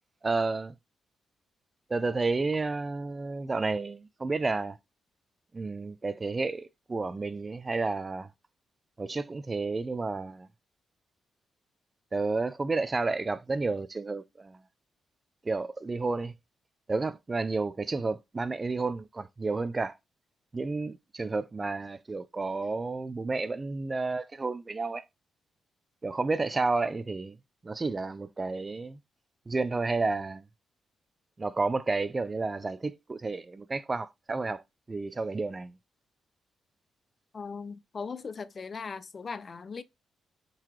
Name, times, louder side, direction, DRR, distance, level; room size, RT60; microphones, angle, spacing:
voice 1, 0.2-0.7 1.9-4.8 5.5-8.3 9.0-10.5 12.1-14.6 15.5-16.3 16.9-19.9 20.5-25.0 26.0-27.3 27.6-29.0 29.5-30.4 31.4-34.6 34.9-35.7, right 3 dB, 35° right, 0.4 m, -31 dB
voice 2, 37.3-39.8, left 5 dB, 45° left, 0.4 m, -39 dB
3.9 x 2.8 x 3.0 m
supercardioid pair, 55°, 0 cm